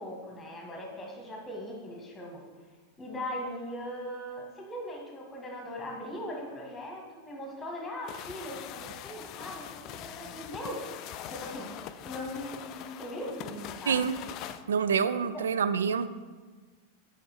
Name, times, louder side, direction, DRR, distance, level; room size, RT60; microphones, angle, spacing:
voice 1, 0.0-2.4 3.0-10.8 11.3-11.7 12.0-14.1 15.3-15.4, left 1 dB, 15° left, 0 dB, 1.7 m, -39 dB
sound 1, 8.1-14.6, left 10 dB, 40° left, 0.3 m, -43 dB
voice 2, 14.7-16.1, right 6 dB, 65° right, 13 dB, 0.3 m, -27 dB
5.9 x 4.9 x 4.6 m, 1.4 s
figure-of-eight pair, 90°, 0 cm